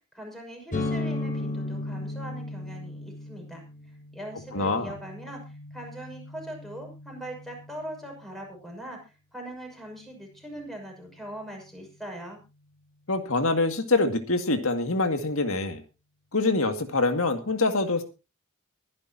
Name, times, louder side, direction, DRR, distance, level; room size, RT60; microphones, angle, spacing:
voice 1, 0.1-3.6 4.1-5.4 5.7-12.4, right 1 dB, ahead, 1 dB, 6.4 m, -41 dB
sound 1, 0.7-8.3, left 2 dB, 35° left, 3.6 m, -36 dB
voice 2, 4.5-4.9 13.1-15.8 16.3-18.0, left 3 dB, 65° left, 7 dB, 2.1 m, -25 dB
23.5 x 11.0 x 2.8 m, 0.29 s
head